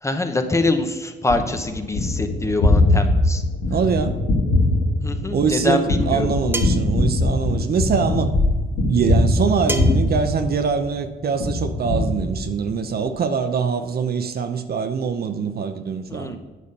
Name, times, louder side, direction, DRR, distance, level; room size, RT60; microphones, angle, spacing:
voice 1, 0.0-3.4 5.0-6.4 16.1-16.4, left 2 dB, 15° left, 7 dB, 0.9 m, -24 dB
Gunshot gunfire, 1.3-11.0 11.4-12.8, left 2 dB, 80° left, 1.7 m, -21 dB
voice 2, 3.7-4.2 5.3-8.3 8.8-16.4, right 6 dB, 50° right, 9 dB, 0.7 m, -23 dB
sound 1, 6.5-6.9 9.7-10.1, right 1 dB, 10° right, 0.8 m, -28 dB
9.4 x 5.0 x 5.4 m, 1.3 s
cardioid pair, 90°, 20 cm